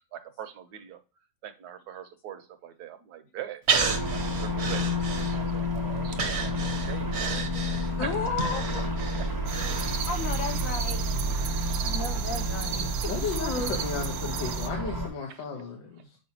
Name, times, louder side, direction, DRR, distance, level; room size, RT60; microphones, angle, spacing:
voice 1, 0.1-1.0 1.4-4.8 5.1-6.4 6.9-7.4 8.0-8.4 11.3-11.8 12.4-12.6, right 9 dB, 65° right, 1.2 m, -42 dB
Breathing, 3.7-5.7 6.1-10.3 10.7-10.8, right 5 dB, 50° right, 0.9 m, -31 dB
sound 1, 3.8-15.1, equal, 20° right, 0.6 m, -30 dB
voice 2, 8.0-8.8 10.1-11.0 11.8-12.9 13.2-13.8, left 5 dB, 65° left, 0.8 m, -33 dB
sound 2, 9.5-14.7, right 8 dB, 85° right, 1.4 m, -36 dB
voice 3, 13.0-16.2, left 5 dB, 85° left, 1.8 m, -34 dB
7.2 x 4.6 x 2.8 m
omnidirectional pair, 2.0 m